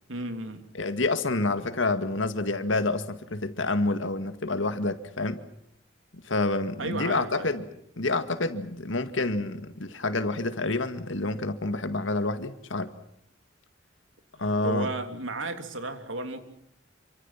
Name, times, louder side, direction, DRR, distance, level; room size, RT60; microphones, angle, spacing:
voice 1, 0.1-0.7 6.8-7.5 14.3-16.4, right 2 dB, 90° right, 3.2 m, -34 dB
voice 2, 0.7-5.4 6.2-7.6 8.0-12.9 14.4-14.9, left 2 dB, 75° left, 2.1 m, -28 dB
28.0 x 25.5 x 5.9 m
head